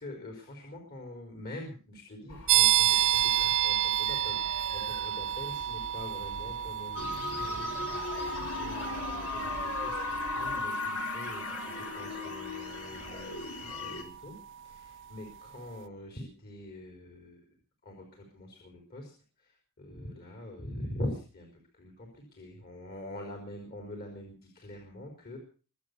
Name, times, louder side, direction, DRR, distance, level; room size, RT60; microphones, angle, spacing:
voice 1, 0.0-14.4 14.6-17.6 17.8-19.1 19.4-21.5 21.7-25.4, left 1 dB, 45° left, 2 dB, 4.3 m, -44 dB
sound 1, 2.3-10.6, left 2 dB, 65° left, 5.4 m, -45 dB
sound 2, 2.5-15.0, right 13 dB, 60° right, 0.7 m, -31 dB
sound 3, 7.0-14.0, left 3 dB, 85° left, 4.3 m, -36 dB
24.0 x 8.3 x 6.7 m, 0.39 s
head